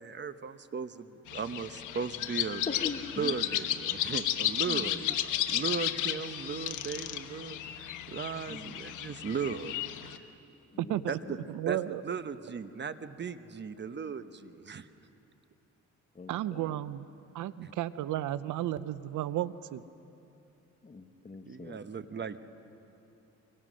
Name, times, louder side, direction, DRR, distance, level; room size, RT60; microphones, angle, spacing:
voice 1, 0.0-2.6 3.2-5.1 5.5-9.7 11.1-11.4 11.7-11.8 12.0-14.9 17.6-17.7 21.5-22.4, right 6 dB, 35° right, 11 dB, 1.0 m, -37 dB
sound 1, 1.3-10.2, left 12 dB, 85° left, 1.1 m, -33 dB
voice 2, 2.7-3.4 4.7-5.2 8.5-8.7 10.7-11.5 16.1-16.8 20.8-21.8, left 4 dB, 25° left, 7 dB, 1.3 m, -42 dB
voice 3, 10.8-11.2 11.5-12.0 16.3-17.1 17.3-19.8, right 13 dB, 80° right, 16 dB, 0.7 m, -33 dB
25.0 x 24.5 x 6.3 m, 2.8 s
cardioid pair, 90°, 30 cm